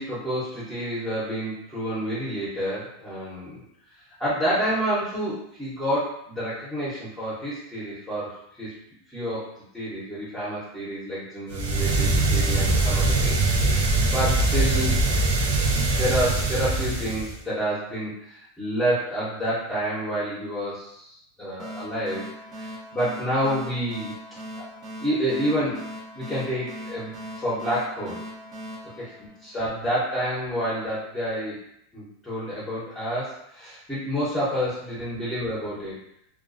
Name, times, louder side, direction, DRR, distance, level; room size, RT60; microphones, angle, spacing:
voice 1, 0.0-3.6 4.2-8.7 9.1-13.4 13.7-15.0 15.7-22.3 22.6-24.1 24.6-24.7 25.0-25.8 26.1-28.2 29.0-29.1 29.4-31.6 31.9-36.0, equal, 10° left, -11 dB, 0.8 m, -29 dB
sound 1, 11.5-17.4, right 2 dB, 90° right, 0.6 m, -22 dB
sound 2, 21.6-29.9, equal, 45° right, 0.7 m, -40 dB
2.3 x 2.2 x 2.5 m, 0.76 s
supercardioid pair, 130°, 0 cm